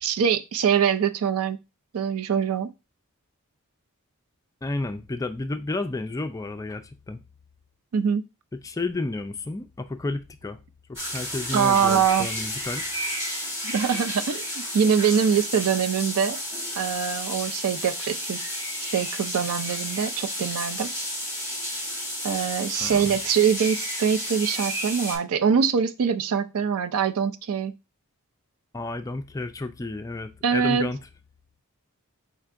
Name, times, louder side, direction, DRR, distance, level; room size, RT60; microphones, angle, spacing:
voice 1, 0.0-1.6 1.9-2.7 7.9-8.2 11.5-12.3 13.6-16.4 16.8-18.4 18.9-20.9 22.2-27.7 30.4-30.9, right 7 dB, 65° right, 0.4 m, -23 dB
voice 2, 4.6-7.2 8.5-10.6 10.9-12.8 22.8-23.2 28.7-31.0, left 2 dB, 15° left, 0.3 m, -31 dB
sound 1, 11.0-25.2, equal, 15° right, 2.1 m, -32 dB
4.5 x 4.4 x 2.5 m
head